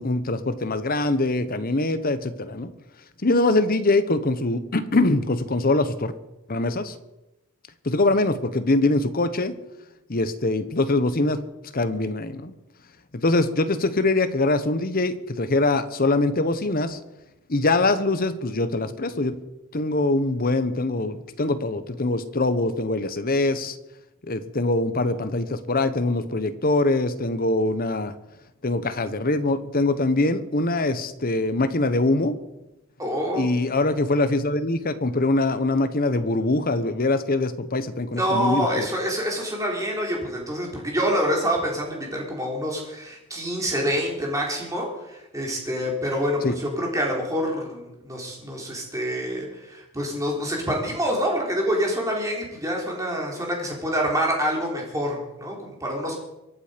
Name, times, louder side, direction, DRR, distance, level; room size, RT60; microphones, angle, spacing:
voice 1, 0.0-2.7 3.2-6.1 6.5-6.9 7.8-9.6 10.1-11.4 11.7-12.5 13.1-17.0 17.5-19.3 19.7-23.8 24.2-28.1 28.6-32.4 33.3-38.9 46.4-46.6, left 2 dB, 40° left, 12 dB, 1.0 m, -23 dB
voice 2, 33.0-33.5 38.1-56.1, equal, 15° right, -1 dB, 3.7 m, -26 dB
24.0 x 8.6 x 5.2 m, 0.95 s
head